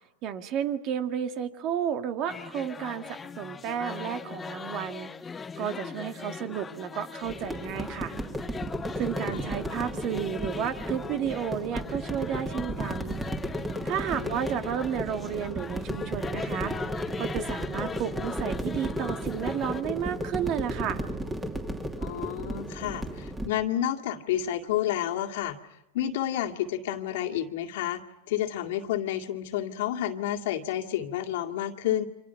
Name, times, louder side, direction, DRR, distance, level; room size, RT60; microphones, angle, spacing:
voice 1, 0.2-5.1 5.6-8.1 9.0-13.2 13.8-16.7 17.2-21.0, right 9 dB, 45° right, 7 dB, 2.0 m, -32 dB
sound 1, 2.3-19.8, left 5 dB, 15° left, 0.9 m, -40 dB
sound 2, 7.2-23.5, right 1 dB, 10° right, 2.8 m, -34 dB
voice 2, 14.1-14.5 22.0-25.6 25.9-28.0 28.3-32.0, left 11 dB, 70° left, 4 dB, 2.2 m, -30 dB
29.5 x 26.5 x 5.9 m, 0.89 s
supercardioid pair, 130°, 0 cm